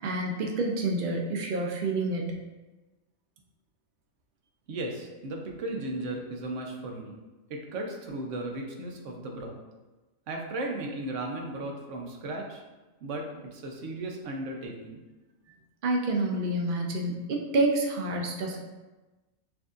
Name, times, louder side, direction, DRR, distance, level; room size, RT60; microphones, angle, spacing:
voice 1, 0.0-2.4 15.8-18.6, right 2 dB, 50° right, 1 dB, 0.6 m, -28 dB
voice 2, 4.7-7.1 7.5-9.6 10.3-12.6 13.0-15.0, right 2 dB, 65° right, 1 dB, 1.0 m, -36 dB
6.0 x 2.6 x 2.4 m, 1.1 s
omnidirectional pair, 1.4 m